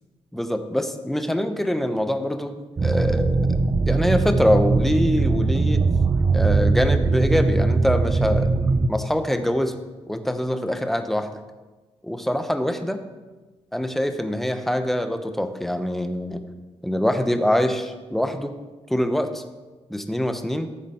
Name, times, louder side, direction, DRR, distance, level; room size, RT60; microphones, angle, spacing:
voice 1, 0.3-3.5 3.8-5.8 6.3-8.5 8.9-9.8 10.1-11.3 12.0-13.0 13.7-16.4 16.8-18.5 18.9-19.4 19.9-20.7, equal, ahead, 8 dB, 0.8 m, -24 dB
sound 1, 2.8-8.9, right 3 dB, 30° right, 0.6 m, -20 dB
14.5 x 7.2 x 4.3 m, 1.2 s
cardioid pair, 110°, 11 cm